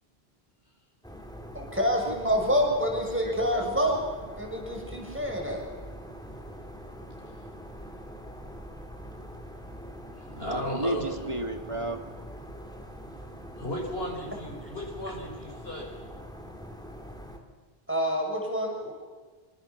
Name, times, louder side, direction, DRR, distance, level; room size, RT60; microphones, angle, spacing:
sound 1, 1.0-17.4, equal, 5° left, 3.2 m, -43 dB
voice 1, 1.5-4.0 4.4-5.6 17.9-18.9, equal, 10° right, 1 dB, 6.6 m, -27 dB
voice 2, 3.2-3.9 10.3-12.1, right 1 dB, 30° right, 6 dB, 2.3 m, -34 dB
voice 3, 10.1-11.1 13.6-16.0, equal, 75° left, 0 dB, 5.3 m, -35 dB
27.0 x 25.5 x 7.3 m, 1.5 s
omnidirectional pair, 1.0 m